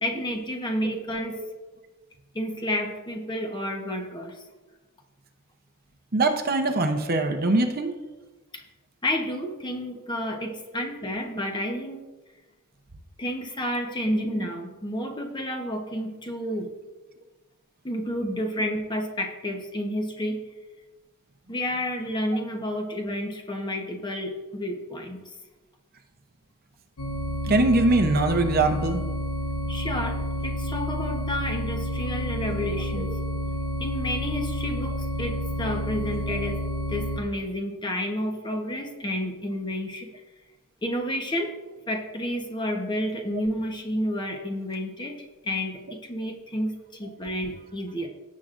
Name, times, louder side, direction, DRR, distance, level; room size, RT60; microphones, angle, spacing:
voice 1, 0.0-1.4 2.3-4.3 8.5-8.6 9.0-12.0 13.2-16.7 17.8-20.5 21.5-25.3 29.7-33.1 33.8-36.6 36.9-40.2 40.8-41.5 41.9-48.1, equal, 20° left, 2 dB, 1.1 m, -30 dB
voice 2, 6.1-7.9 10.8-10.9 14.3-14.5 27.4-29.0 32.4-32.5 32.9-33.1 34.7-34.8, right 2 dB, 45° right, 6 dB, 0.8 m, -23 dB
sound 1, 27.0-37.2, left 1 dB, 80° left, 1.1 m, -30 dB
17.0 x 7.4 x 2.6 m, 1.2 s
head